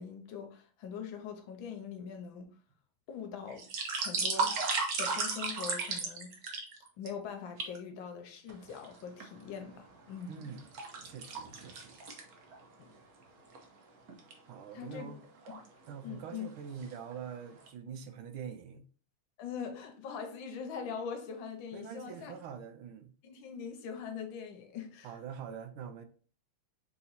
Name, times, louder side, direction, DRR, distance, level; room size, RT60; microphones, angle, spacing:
voice 1, 0.0-2.5 3.1-3.6 4.0-4.6 5.0-6.3 7.0-10.5 12.8-12.9 14.7-15.1 16.0-16.5 19.4-22.3 23.2-25.1, left 6 dB, 75° left, 1.5 m, -42 dB
sound 1, 3.5-7.1 7.6-7.8 8.5-9.3 9.8-12.6 13.0-13.1 13.5-13.6 14.1-14.3 15.2-15.7 16.2-16.4 16.7-17.3 17.7-17.8, right 4 dB, 55° right, 1.1 m, -35 dB
voice 2, 10.3-10.7 11.0-12.0 14.4-15.2 15.9-18.8 21.7-23.1 25.0-26.1, right 7 dB, 85° right, 1.4 m, -44 dB
4.0 x 2.9 x 4.0 m
omnidirectional pair, 2.3 m